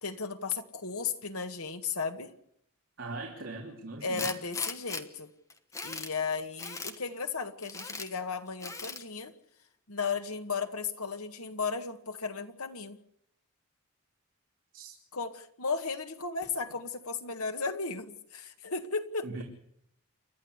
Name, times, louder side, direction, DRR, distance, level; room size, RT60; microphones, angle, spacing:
voice 1, 0.0-2.3 4.0-5.3 5.8-9.3 9.9-13.0 15.1-19.4, left 5 dB, 85° left, 7 dB, 1.9 m, -35 dB
voice 2, 3.0-4.3 14.7-14.9 19.2-19.4, right 2 dB, 55° right, -2 dB, 3.7 m, -40 dB
Tools, 4.1-5.0 5.5-6.1 6.6-7.0 7.6-8.1 8.6-9.0, left 3 dB, 15° left, 1.1 m, -38 dB
29.5 x 12.0 x 8.2 m, 0.73 s
head